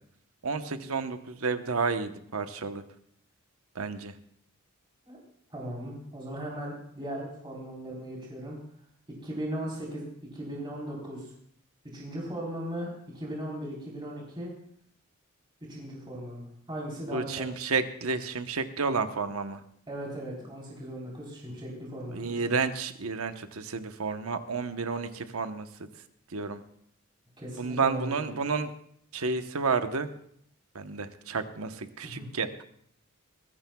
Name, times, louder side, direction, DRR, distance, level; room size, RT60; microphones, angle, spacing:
voice 1, 0.4-2.8 3.7-4.1 17.1-19.6 22.1-25.7 26.3-26.6 27.6-28.7 29.1-30.1 30.7-32.5, right 4 dB, 75° right, 8 dB, 1.0 m, -31 dB
voice 2, 5.5-8.6 9.2-10.0 10.3-11.3 11.9-14.5 15.7-17.4 19.9-22.6 27.4-28.3 32.0-32.3, right 1 dB, 20° right, -4 dB, 3.8 m, -38 dB
21.5 x 15.0 x 2.3 m, 0.67 s
head